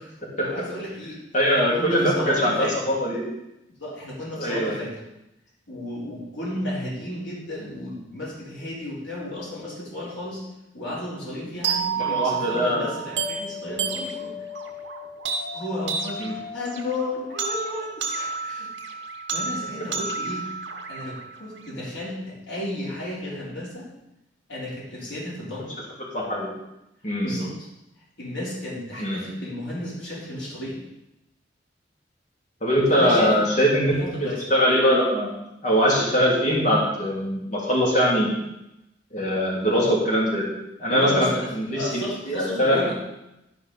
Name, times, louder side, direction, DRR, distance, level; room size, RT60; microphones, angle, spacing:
voice 1, 0.0-2.8 3.8-5.0 5.7-10.4 10.7-14.4 15.5-18.7 19.3-20.5 20.9-23.9 24.5-25.8 27.2-27.7 28.2-30.8 32.9-33.5 33.9-34.4 40.9-42.9, left 1 dB, 80° left, -6 dB, 4.0 m, -33 dB
voice 2, 1.3-3.2 4.4-4.8 12.0-12.9 16.2-16.3 26.1-26.5 27.0-27.4 29.0-29.2 32.6-38.3 39.1-40.5 40.8-42.8, equal, 40° left, -4 dB, 2.8 m, -22 dB
sound 1, 11.6-21.7, right 4 dB, 75° right, 1.5 m, -31 dB
12.0 x 5.3 x 5.5 m, 0.89 s
head